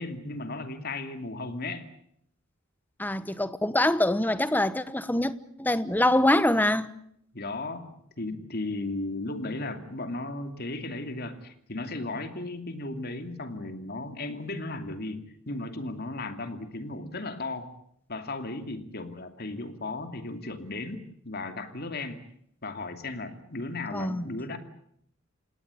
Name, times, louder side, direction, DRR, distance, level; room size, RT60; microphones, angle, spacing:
voice 1, 0.0-1.9 7.3-17.7 18.1-22.2 22.6-24.6, left 2 dB, 55° left, 2.8 m, -35 dB
voice 2, 3.0-5.3 5.6-6.9 23.9-24.2, left 1 dB, 10° left, 1.1 m, -24 dB
28.5 x 18.0 x 8.5 m
head